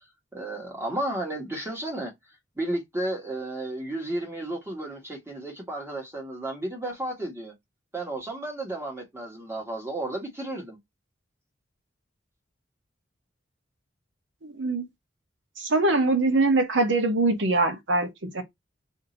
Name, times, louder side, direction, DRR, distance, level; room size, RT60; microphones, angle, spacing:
voice 1, 0.3-2.1 2.6-7.5 7.9-10.8, right 1 dB, 15° right, 1.5 m, -33 dB
voice 2, 14.4-14.8 15.6-18.4, right 2 dB, 70° right, 0.9 m, -23 dB
2.8 x 2.7 x 3.9 m
head